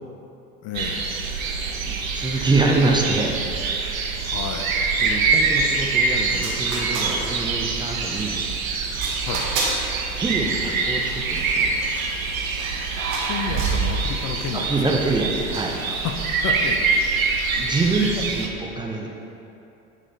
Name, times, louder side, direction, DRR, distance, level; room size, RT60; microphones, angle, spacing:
voice 1, 0.6-1.3 4.3-4.8 9.2-9.5 13.2-15.0 15.9-17.0 18.0-18.2, left 7 dB, 35° left, 3 dB, 0.7 m, -31 dB
sound 1, 0.7-18.5, right 4 dB, 70° right, 0.9 m, -25 dB
voice 2, 1.8-3.4 5.0-8.4 10.2-11.7 14.5-15.7 17.6-19.1, right 3 dB, 10° right, -1 dB, 0.7 m, -25 dB
sound 2, 6.3-7.7 8.1-8.5 8.9-9.9 10.3-12.8 13.1-13.9 14.3-14.7 15.5-15.8, right 2 dB, 45° right, 1.8 m, -32 dB
8.8 x 4.9 x 4.3 m, 2.8 s
figure-of-eight pair, 70°, 43 cm